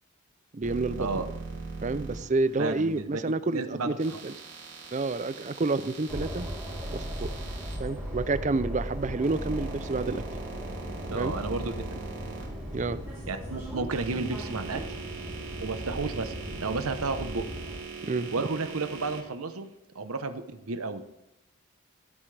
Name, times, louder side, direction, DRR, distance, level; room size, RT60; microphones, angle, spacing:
voice 1, 0.5-1.2 1.8-4.3 4.9-6.5 6.9-7.3 7.8-10.2 11.1-11.3 12.7-13.0 14.1-14.2 18.0-18.5, right 3 dB, 35° right, 15 dB, 0.4 m, -29 dB
sound 1, 0.6-3.0 4.0-7.8 8.8-13.1 13.7-19.2, right 4 dB, 65° right, 2.8 m, -42 dB
voice 2, 2.6-3.2 3.5-3.9 11.1-11.7 13.3-14.8 15.6-17.4 18.3-19.7 19.9-21.1, right 3 dB, 80° right, 9 dB, 0.9 m, -32 dB
sound 2, 6.1-17.8, equal, 10° right, 3.5 m, -37 dB
14.5 x 9.1 x 3.4 m, 0.86 s
head